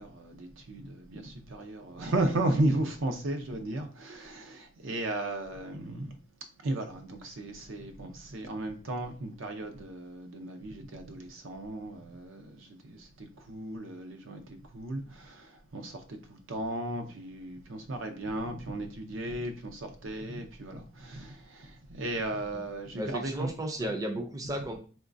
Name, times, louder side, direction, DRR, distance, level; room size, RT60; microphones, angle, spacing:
voice 1, 0.0-6.2 6.6-23.5 23.8-23.9, right 1 dB, 80° right, 0.6 m, -35 dB
voice 2, 22.9-24.8, right 1 dB, 15° right, 0.4 m, -34 dB
3.6 x 3.0 x 2.6 m
head